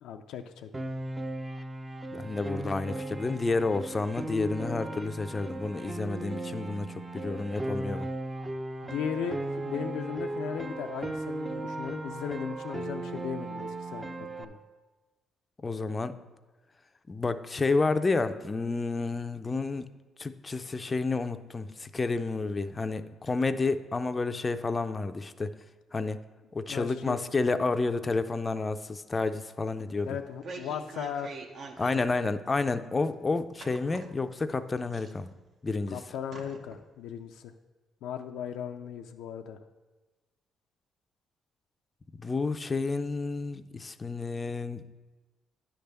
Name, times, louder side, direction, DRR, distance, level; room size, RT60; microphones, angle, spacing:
voice 1, 0.0-0.7 8.8-14.1 14.4-14.6 26.6-27.2 30.1-31.3 32.1-32.3 35.9-37.5 38.0-39.6, left 8 dB, 90° left, 5 dB, 0.4 m, -37 dB
Piano, 0.7-14.4, right 2 dB, 20° right, 0.6 m, -37 dB
voice 2, 2.1-8.1 15.6-16.2 17.1-19.9 20.2-25.5 25.9-26.2 26.5-30.1 31.8-35.3 35.6-36.0 42.2-44.8, left 3 dB, 25° left, 10 dB, 0.4 m, -30 dB
sound 1, 30.1-32.2 32.5-32.6 33.6-34.5 34.9-35.6 35.9-36.0 36.3-36.8 37.2-37.3, right 3 dB, 60° right, 0.8 m, -44 dB
9.9 x 3.4 x 6.6 m, 1.2 s
cardioid pair, 90°, 0 cm